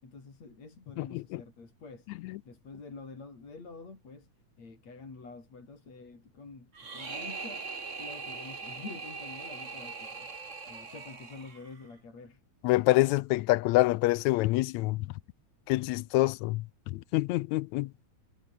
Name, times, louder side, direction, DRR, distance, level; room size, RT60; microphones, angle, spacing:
voice 1, 0.0-2.1 2.5-4.3 4.6-7.7 8.0-10.3 10.7-12.4, left 4 dB, 60° left, 7.1 m, -47 dB
voice 2, 1.0-1.4 2.2-2.4 12.6-15.1 15.7-17.9, left 19 dB, 80° left, 1.8 m, -26 dB
sound 1, 6.7-11.9, right 4 dB, 25° right, 2.1 m, -41 dB
omnidirectional pair, 3.4 m